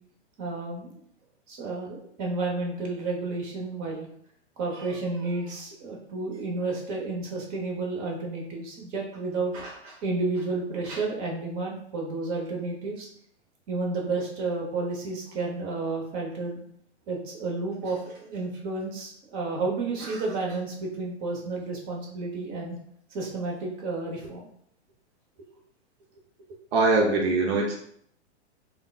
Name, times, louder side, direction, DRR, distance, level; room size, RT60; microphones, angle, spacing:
voice 1, 0.4-1.0 1.5-4.1 4.6-13.1 13.7-16.6 17.1-22.8 23.1-24.4, right 3 dB, 35° right, -1 dB, 1.0 m, -31 dB
voice 2, 26.7-27.7, right 3 dB, 60° right, -1 dB, 0.6 m, -22 dB
3.5 x 2.3 x 2.3 m, 0.66 s
hypercardioid pair, 115°, 34 cm